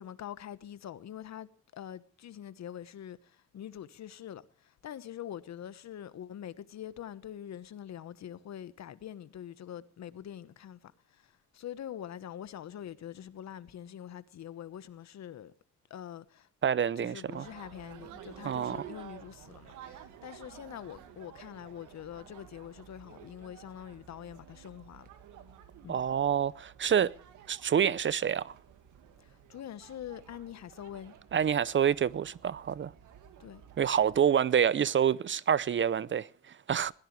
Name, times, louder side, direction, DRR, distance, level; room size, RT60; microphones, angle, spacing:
voice 1, 0.0-15.5 15.9-16.5 17.0-25.1 25.8-26.0 29.2-31.2 33.4-33.6, left 10 dB, 65° left, 1.3 m, -44 dB
voice 2, 16.6-17.5 18.4-18.8 25.9-27.1 27.5-28.5 31.3-32.9 33.8-36.9, right 8 dB, 40° right, 0.6 m, -27 dB
sound 1, 17.3-34.2, right 9 dB, 90° right, 2.1 m, -52 dB
22.0 x 17.0 x 3.3 m
cardioid pair, 90°, 30 cm